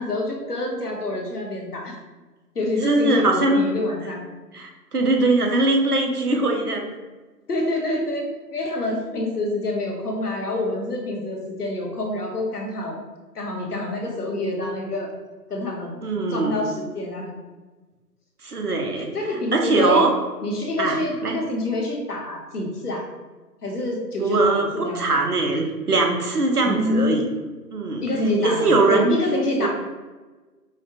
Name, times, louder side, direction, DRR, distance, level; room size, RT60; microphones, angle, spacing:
voice 1, 0.0-2.0 2.5-4.2 7.5-13.0 13.3-15.1 15.5-16.0 16.3-17.3 19.1-20.0 20.4-23.1 23.6-25.2 26.6-27.3 28.0-29.7, left 1 dB, 65° left, 0 dB, 1.0 m, -26 dB
voice 2, 2.8-3.6 4.5-6.9 16.0-16.6 18.4-20.1 20.8-21.4 24.2-27.3 27.7-28.0 28.4-29.1 29.6-29.7, right 2 dB, 65° right, 2 dB, 0.8 m, -21 dB
4.8 x 2.2 x 2.8 m, 1.3 s
figure-of-eight pair, 150°, 50 cm